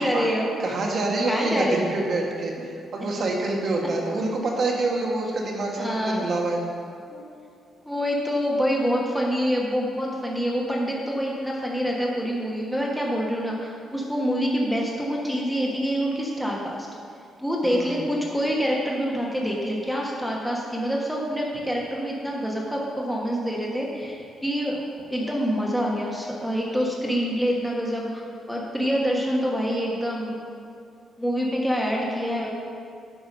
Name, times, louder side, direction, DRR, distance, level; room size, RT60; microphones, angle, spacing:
voice 1, 0.0-0.6 1.3-1.8 5.8-6.3 7.1-7.2 7.8-16.9 17.4-30.4 31.2-32.5, equal, ahead, -3 dB, 1.3 m, -26 dB
voice 2, 0.6-6.6 17.6-18.0, right 2 dB, 55° right, -1 dB, 1.5 m, -26 dB
9.2 x 4.9 x 5.3 m, 2.4 s
cardioid pair, 75°, 0 cm